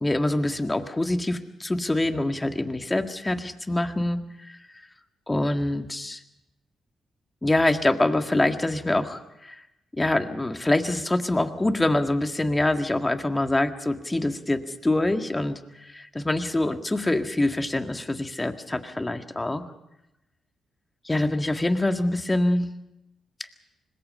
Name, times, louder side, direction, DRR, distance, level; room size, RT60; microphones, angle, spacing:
voice 1, 0.0-4.6 5.3-6.2 7.4-9.6 9.9-19.6 21.0-22.7, left 1 dB, 20° left, 7 dB, 1.8 m, -25 dB
25.5 x 20.5 x 5.5 m, 0.88 s
hypercardioid pair, 45°, 0 cm